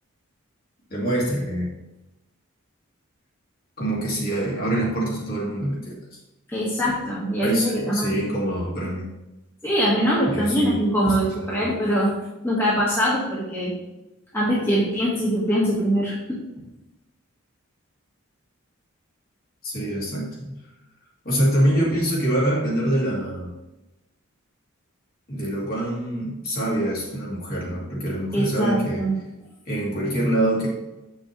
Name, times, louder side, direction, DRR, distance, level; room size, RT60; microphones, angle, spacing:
voice 1, 0.9-1.7 3.8-6.2 7.4-9.1 10.3-10.8 11.4-11.7 19.6-20.6 21.2-23.6 25.3-29.1 29.7-30.7, right 1 dB, 45° left, -4 dB, 2.4 m, -25 dB
voice 2, 6.5-8.1 9.6-12.1 12.4-13.7 14.3-16.4 28.3-29.1, equal, 10° left, -7 dB, 1.7 m, -23 dB
8.4 x 6.3 x 3.3 m, 1.0 s
head